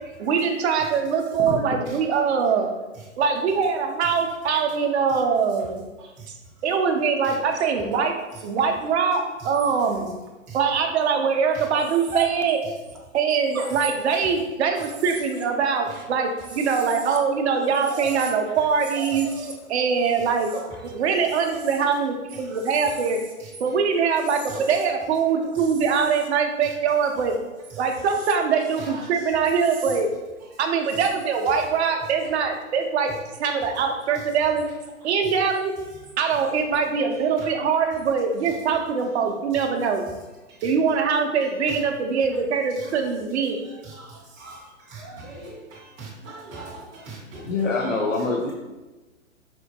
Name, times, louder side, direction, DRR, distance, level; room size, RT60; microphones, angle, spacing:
voice 1, 0.2-2.7 3.2-5.9 6.6-10.2 10.5-12.6 13.1-20.5 20.8-23.2 23.6-27.3 27.8-30.1 30.6-33.1 33.4-34.6 35.0-35.7 36.2-40.0 40.6-43.6, right 6 dB, 55° right, 4 dB, 0.6 m, -23 dB
voice 2, 1.5-1.8 47.4-48.5, left 3 dB, 65° left, -2 dB, 0.7 m, -25 dB
sound 1, 11.8-13.0 13.5-14.4 14.7-17.2 17.5-21.8 22.5-23.3 24.1-24.9 25.5-26.3 27.6-28.3 29.5-30.0 30.8-31.1, right 4 dB, 85° right, 0.8 m, -38 dB
voice 3, 44.9-45.6 46.0-47.5, right 3 dB, 10° right, -6 dB, 0.5 m, -40 dB
4.3 x 2.1 x 2.8 m, 1.2 s
hypercardioid pair, 125°, 41 cm